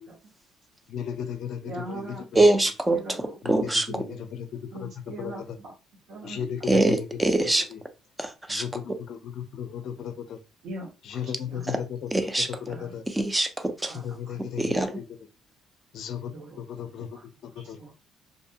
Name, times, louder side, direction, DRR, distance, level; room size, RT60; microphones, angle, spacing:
voice 1, 0.9-2.4 3.4-3.7 4.1-4.5 4.8-4.9 5.2-5.5 6.2-7.1 7.7-7.8 8.5-10.4 11.0-12.3 12.6-13.0 14.0-15.0 15.9-16.3 16.6-17.1 17.4-17.8, left 8 dB, 60° left, 9 dB, 0.4 m, -35 dB
voice 2, 1.6-3.6 3.9-4.2 4.7-5.7 6.1-6.8 10.6-11.6 12.6-13.0 13.9-14.6 16.3-16.6 17.0-17.2 17.8-17.9, right 2 dB, 80° right, -2 dB, 1.1 m, -41 dB
voice 3, 2.4-3.0 3.5-3.9 6.7-7.7 8.2-8.6 12.1-12.5 13.1-13.9 14.4-14.9, right 2 dB, 10° right, 8 dB, 0.3 m, -23 dB
2.6 x 2.1 x 2.7 m, 0.31 s
cardioid pair, 140°, 0 cm